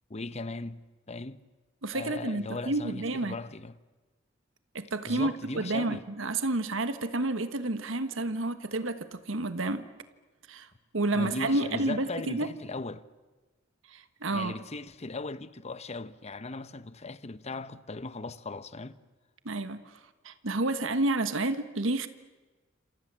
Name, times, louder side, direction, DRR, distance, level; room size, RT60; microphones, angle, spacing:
voice 1, 0.1-1.4 1.9-3.8 5.1-6.0 11.1-13.0 14.3-19.0, left 3 dB, 35° left, 1.0 m, -38 dB
voice 2, 1.8-3.4 4.7-9.9 10.5-10.7 10.9-12.5 13.9-14.5 19.4-20.0 20.2-22.1, right 2 dB, 80° right, 1.4 m, -30 dB
28.5 x 27.5 x 7.6 m
head